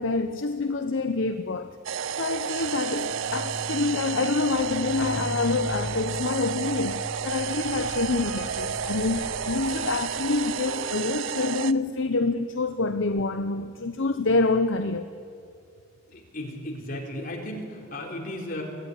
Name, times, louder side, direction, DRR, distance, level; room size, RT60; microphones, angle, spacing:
voice 1, 0.0-1.8 2.2-15.1, left 3 dB, 60° left, 8 dB, 0.8 m, -27 dB
sound 1, 1.8-11.7, right 7 dB, 65° right, 0.5 m, -32 dB
sound 2, 2.6-10.9, equal, 85° left, 2.6 m, -39 dB
voice 2, 16.1-18.6, left 1 dB, 40° left, -1 dB, 4.0 m, -35 dB
23.5 x 14.5 x 9.8 m, 2.3 s
head